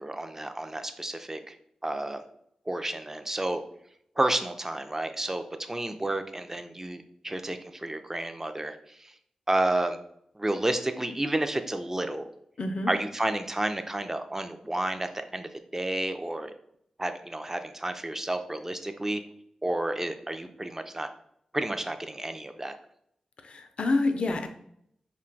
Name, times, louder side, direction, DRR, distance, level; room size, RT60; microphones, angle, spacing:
voice 1, 0.0-1.5 1.8-2.2 2.7-3.6 4.2-9.1 9.5-10.0 10.4-12.3 12.9-16.5 17.0-19.2 19.6-21.1 21.5-22.8, right 1 dB, 20° right, 8 dB, 0.3 m, -31 dB
voice 2, 12.6-12.9 23.4-24.5, left 2 dB, 60° left, 7 dB, 0.4 m, -27 dB
2.2 x 2.2 x 3.8 m, 0.71 s
cardioid pair, 45°, 2 cm